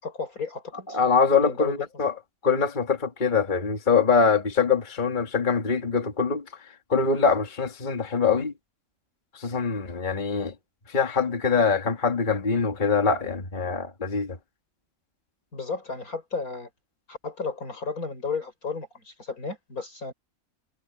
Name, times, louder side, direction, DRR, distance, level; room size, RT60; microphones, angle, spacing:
voice 1, 0.0-1.0 1.3-1.9 15.5-16.7 17.1-20.1, left 4 dB, 80° left, 5.5 m, -33 dB
voice 2, 0.9-2.1 2.4-6.4 6.9-8.5 9.4-10.5 10.9-14.4, left 5 dB, 35° left, 2.0 m, -23 dB
omnidirectional pair, 1.5 m